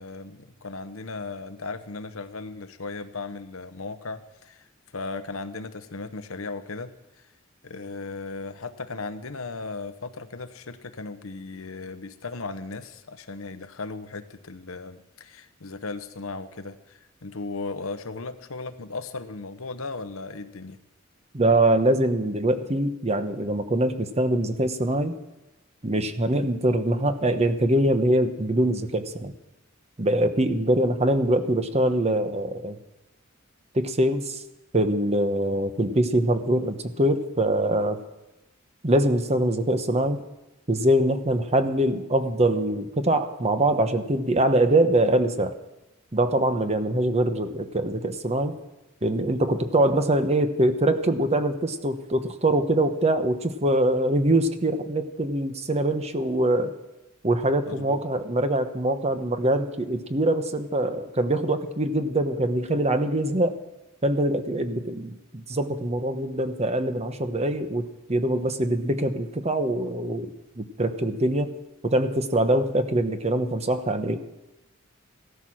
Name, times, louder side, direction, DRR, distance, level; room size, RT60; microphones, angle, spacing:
voice 1, 0.0-4.7 4.9-6.9 7.6-20.8 57.6-58.0, left 3 dB, 80° left, 10 dB, 1.0 m, -36 dB
voice 2, 21.3-25.1 25.8-29.3 30.0-32.8 33.7-34.4 34.7-38.0 38.8-40.2 40.7-45.5 46.1-48.6 49.0-56.7 57.2-63.6 64.0-70.3 70.6-71.6 71.8-74.2, right 1 dB, 30° right, 9 dB, 1.0 m, -23 dB
16.0 x 13.0 x 6.2 m, 0.99 s
head